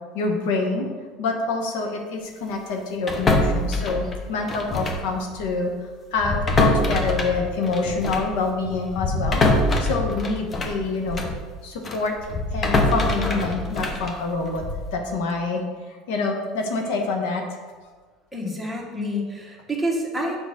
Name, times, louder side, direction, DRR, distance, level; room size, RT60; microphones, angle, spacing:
voice 1, 0.1-0.9 1.2-5.7 6.1-9.4 9.8-11.2 11.6-14.6 14.9-15.6 15.9-17.4, left 3 dB, 80° left, 2 dB, 1.0 m, -26 dB
sound 1, 3.1-5.1 5.4-5.6 6.2-11.4 11.8-14.9, left 2 dB, 25° left, 0.8 m, -24 dB
voice 2, 18.3-20.4, equal, 5° right, -3 dB, 1.3 m, -28 dB
6.6 x 5.1 x 3.6 m, 1.5 s
supercardioid pair, 125°, 0 cm